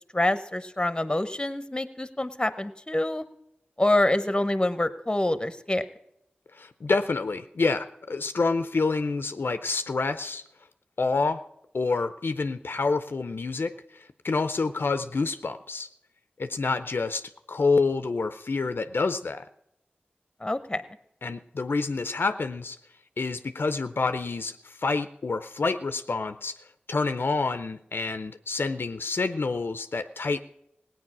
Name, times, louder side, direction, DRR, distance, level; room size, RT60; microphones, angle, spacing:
voice 1, 0.1-3.2 3.8-5.8 20.4-20.8, left 1 dB, 20° left, 12 dB, 0.9 m, -26 dB
voice 2, 6.5-10.4 11.0-11.4 11.7-15.9 16.4-17.2 17.5-19.4 21.2-22.8 23.2-26.5 26.9-30.4, left 3 dB, 75° left, 10 dB, 0.5 m, -28 dB
17.5 x 9.2 x 6.0 m, 0.77 s
wide cardioid pair, 50°, 4 cm